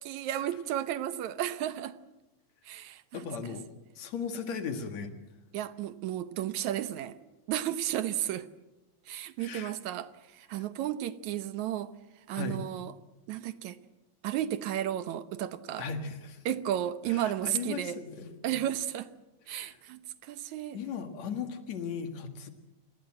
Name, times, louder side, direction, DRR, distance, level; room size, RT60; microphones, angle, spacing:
voice 1, 0.0-2.0 2.7-3.6 5.5-7.2 7.5-8.5 9.1-11.9 12.3-12.9 13.3-13.8 14.2-15.9 16.5-18.0 18.4-19.1 19.5-20.8, right 12 dB, 80° right, 2.3 m, -33 dB
voice 2, 3.1-3.7 4.0-5.1 9.4-9.7 12.3-12.6 15.8-16.4 17.1-18.6 19.5-19.8 20.7-22.5, left 6 dB, 65° left, 3.1 m, -37 dB
27.5 x 19.0 x 7.7 m
omnidirectional pair, 3.4 m